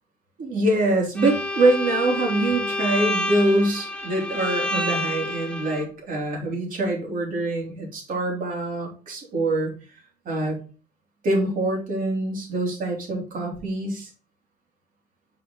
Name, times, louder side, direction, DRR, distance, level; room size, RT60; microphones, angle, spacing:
voice 1, 0.4-9.7 10.2-10.6 11.2-14.1, right 2 dB, 55° right, 0 dB, 3.0 m, -24 dB
Bowed string instrument, 1.1-5.9, left 1 dB, 5° left, 1.1 m, -28 dB
5.8 x 4.7 x 3.8 m, 0.37 s
cardioid pair, 110°, 17 cm